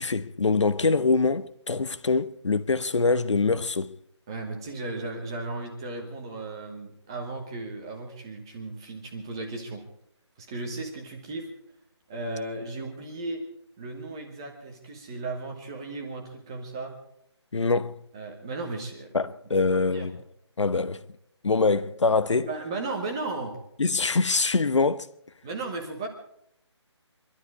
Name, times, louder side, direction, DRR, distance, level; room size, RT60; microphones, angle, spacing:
voice 1, 0.0-4.0 17.5-17.9 19.1-20.1 20.6-21.0 21.4-22.5 23.8-25.1, left 4 dB, 80° left, 1.0 m, -24 dB
voice 2, 4.3-9.8 10.4-11.5 12.1-13.4 13.8-16.9 18.1-19.2 19.7-20.1 22.4-23.6 25.4-26.1, right 3 dB, 10° right, 1.1 m, -35 dB
23.5 x 12.5 x 4.8 m
hypercardioid pair, 180°, 15 cm